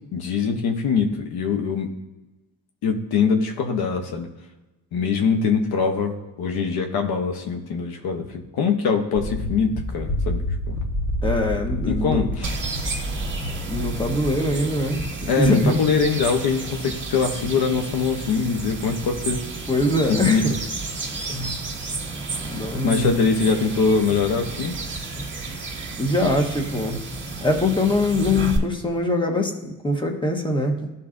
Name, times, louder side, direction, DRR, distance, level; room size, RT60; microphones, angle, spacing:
voice 1, 0.1-1.9 2.8-4.3 4.9-10.7 11.9-12.6 15.3-19.4 20.1-20.4 22.8-24.8, left 5 dB, 75° left, 4 dB, 0.9 m, -23 dB
sound 1, 9.1-14.6, left 1 dB, 50° left, 1.6 m, -28 dB
voice 2, 11.2-12.3 13.7-16.2 19.7-20.5 21.3-21.6 22.4-23.1 26.0-27.0 27.4-30.9, left 1 dB, 10° left, 2 dB, 1.3 m, -23 dB
sound 2, 12.4-28.6, right 3 dB, 30° right, 1.7 m, -32 dB
12.0 x 4.2 x 2.6 m, 1.1 s
supercardioid pair, 65°, 38 cm